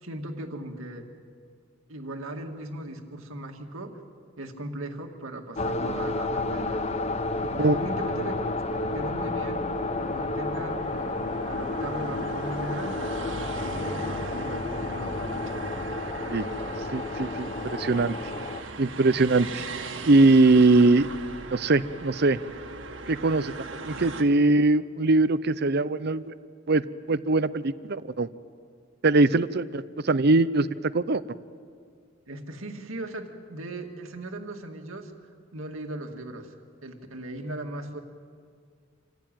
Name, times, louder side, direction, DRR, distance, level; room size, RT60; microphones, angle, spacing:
voice 1, 0.0-1.0 1.9-3.9 4.4-6.8 7.5-8.3 8.9-9.7 10.0-10.8 11.5-13.0 13.5-15.7 32.3-35.1 35.5-36.5 36.8-38.0, right 1 dB, 90° right, 4 dB, 2.2 m, -38 dB
sound 1, 5.6-18.6, left 2 dB, 30° left, 0.8 m, -31 dB
sound 2, 6.6-24.2, right 3 dB, 65° right, 1.8 m, -40 dB
voice 2, 16.9-18.1 18.8-19.6 20.1-21.1 21.5-22.4 23.1-23.5 23.8-26.3 26.7-28.3 29.0-30.7 30.9-31.2, right 2 dB, 50° right, 15 dB, 0.7 m, -21 dB
27.5 x 15.5 x 9.1 m, 2.1 s
head